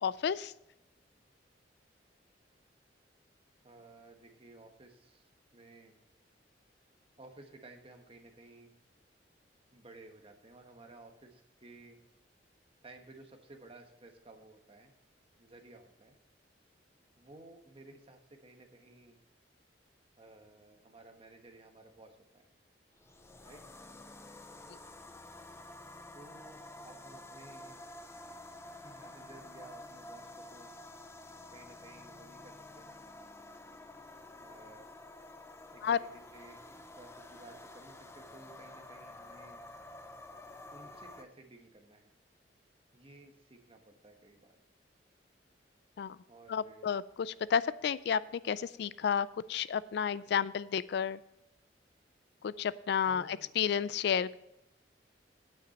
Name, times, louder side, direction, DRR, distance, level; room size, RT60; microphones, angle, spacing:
voice 1, 0.0-0.5 35.8-36.0 46.0-46.2 46.5-51.2 52.4-54.3, left 7 dB, 65° left, 18 dB, 0.3 m, -31 dB
voice 2, 3.6-5.9 7.2-8.7 9.7-12.0 12.8-14.9 15.4-16.2 17.2-19.2 20.2-22.5 23.4-23.6 26.1-27.8 28.7-30.7 31.5-33.0 34.4-34.9 35.7-39.6 40.7-42.2 42.9-44.6 46.3-46.9 50.3-50.4 53.0-53.5, right 2 dB, 30° right, 4 dB, 1.3 m, -55 dB
sound 1, 23.0-41.3, left 2 dB, 15° left, 0.5 m, -50 dB
9.5 x 9.0 x 4.2 m, 0.86 s
head